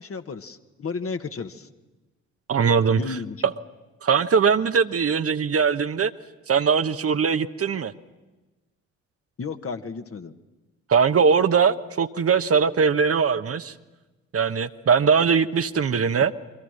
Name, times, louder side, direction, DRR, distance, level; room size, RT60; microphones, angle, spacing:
voice 1, 0.0-1.7 2.9-3.5 9.4-10.3, left 4 dB, 40° left, 7 dB, 1.7 m, -33 dB
voice 2, 2.5-3.0 4.0-6.1 6.5-7.9 10.9-13.7 14.3-16.3, right 6 dB, 40° right, 9 dB, 1.2 m, -21 dB
28.5 x 23.5 x 6.6 m, 1.1 s
figure-of-eight pair, 45°, 37 cm